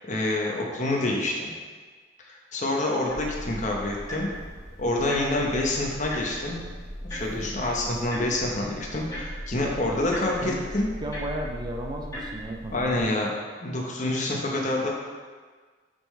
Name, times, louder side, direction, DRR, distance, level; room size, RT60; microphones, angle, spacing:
voice 1, 0.1-1.5 2.2-4.3 4.8-6.6 7.0-10.9 12.7-13.3 13.6-14.9, left 2 dB, 45° left, -1 dB, 1.1 m, -27 dB
sound 1, 3.1-13.0, equal, 20° left, 1.6 m, -38 dB
voice 2, 10.4-10.7 11.0-13.0, right 1 dB, 25° right, 2 dB, 0.5 m, -34 dB
6.8 x 5.5 x 3.3 m, 1.5 s
head